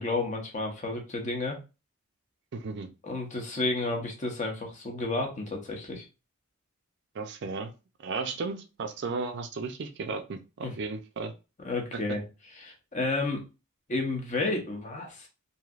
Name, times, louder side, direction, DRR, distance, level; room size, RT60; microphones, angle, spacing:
voice 1, 0.0-1.6 3.0-6.0 10.6-10.7 11.6-12.2 12.6-13.4 13.9-15.3, left 2 dB, 35° left, 2 dB, 0.8 m, -31 dB
voice 2, 2.5-2.9 7.1-7.7 8.0-11.3, right 4 dB, 50° right, 6 dB, 0.4 m, -34 dB
3.2 x 2.7 x 2.4 m, 0.29 s
head